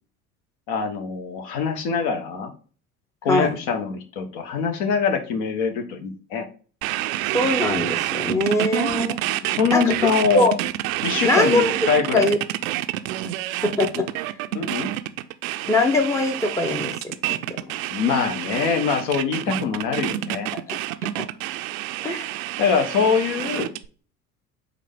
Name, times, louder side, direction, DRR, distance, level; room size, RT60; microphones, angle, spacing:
voice 1, 0.7-2.5 3.2-6.5 9.1-10.4 11.0-12.3 14.5-14.9 17.9-20.5 22.6-23.7, left 6 dB, 55° left, 6 dB, 1.0 m, -23 dB
sound 1, 6.8-23.9, right 15 dB, 65° right, 0.5 m, -28 dB
voice 2, 7.3-9.2 9.7-9.9 10.3-10.5 11.2-11.7 12.1-12.4 13.6-14.0 15.6-17.7 20.5-20.8 22.0-22.4 23.0-23.1, left 2 dB, 5° left, 5 dB, 0.6 m, -22 dB
4.9 x 2.6 x 3.3 m, 0.39 s
figure-of-eight pair, 65°, 45 cm